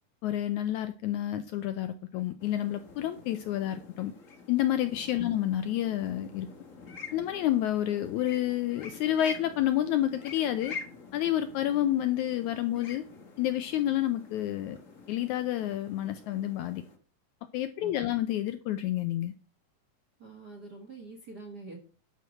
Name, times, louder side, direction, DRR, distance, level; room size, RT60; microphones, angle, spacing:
voice 1, 0.2-4.1 4.5-6.5 7.1-10.8 11.1-13.0 13.4-14.8 15.1-16.8 17.5-19.3, left 12 dB, 80° left, 1.8 m, -29 dB
sound 1, 2.4-17.0, left 5 dB, 45° left, 1.0 m, -47 dB
voice 2, 17.8-18.1 20.2-21.8, right 3 dB, 45° right, 1.3 m, -46 dB
11.5 x 4.5 x 6.3 m
omnidirectional pair, 3.9 m